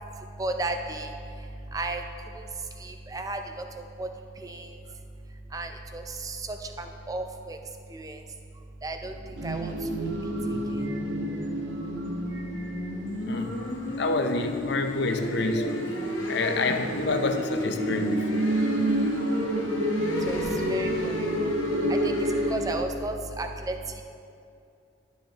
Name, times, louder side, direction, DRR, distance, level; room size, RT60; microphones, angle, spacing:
voice 1, 0.4-1.1 1.7-2.0 2.8-4.1 4.4-4.7 5.5-7.6 7.9-8.2 8.8-9.1 9.4-9.7 20.3-20.4 20.7-21.5 21.9-22.1 22.5-24.0, right 2 dB, 20° right, 5 dB, 0.4 m, -34 dB
sound 1, 9.0-22.7, left 1 dB, 80° left, 0.9 m, -35 dB
sound 2, 9.4-14.6 15.4-22.5, equal, 60° right, 0.8 m, -29 dB
voice 2, 14.0-16.0 16.3-18.6 18.9-19.2, left 3 dB, 55° left, 6 dB, 0.5 m, -28 dB
11.5 x 6.4 x 2.8 m, 2.5 s
head